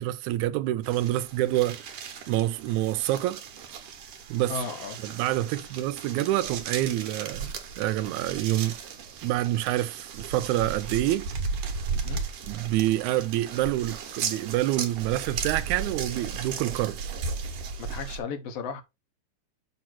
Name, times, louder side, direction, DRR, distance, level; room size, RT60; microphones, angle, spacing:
voice 1, 0.0-1.8 2.3-3.4 4.3-4.6 5.1-8.8 9.2-11.3 12.5-17.0, right 15 dB, 80° right, 1.9 m, -27 dB
sound 1, 0.8-18.2, right 5 dB, 60° right, 1.8 m, -36 dB
voice 2, 4.5-5.0 11.9-12.2 17.8-18.8, left 5 dB, 65° left, 1.8 m, -35 dB
6.7 x 3.0 x 5.9 m
omnidirectional pair, 3.5 m